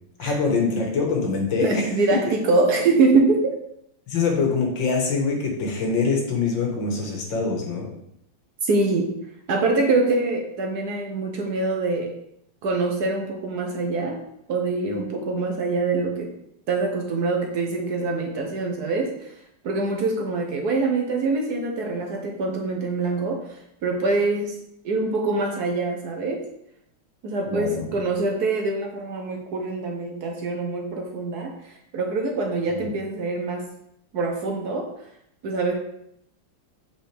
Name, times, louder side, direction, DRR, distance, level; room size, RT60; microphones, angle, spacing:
voice 1, 0.2-1.9 4.1-7.9 27.5-27.9 32.7-32.8, left 4 dB, 70° left, 1 dB, 2.0 m, -24 dB
voice 2, 1.6-3.6 8.6-9.1 9.5-12.1 12.6-14.2 14.5-16.3 16.7-19.3 19.6-24.5 24.8-26.4 27.2-33.7 34.1-34.9 35.4-35.7, right 3 dB, 60° right, 2 dB, 1.3 m, -24 dB
7.2 x 5.3 x 3.4 m, 0.76 s
omnidirectional pair, 2.1 m